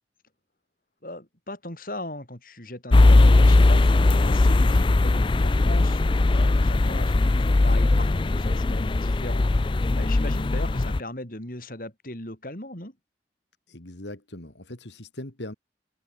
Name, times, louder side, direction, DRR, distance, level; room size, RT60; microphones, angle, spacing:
voice 1, 1.0-12.9, left 1 dB, 50° left, 5.3 m, -38 dB
sound 1, 2.9-11.0, left 2 dB, 30° left, 0.4 m, -19 dB
voice 2, 13.7-15.5, left 1 dB, 85° left, 3.3 m, -40 dB
head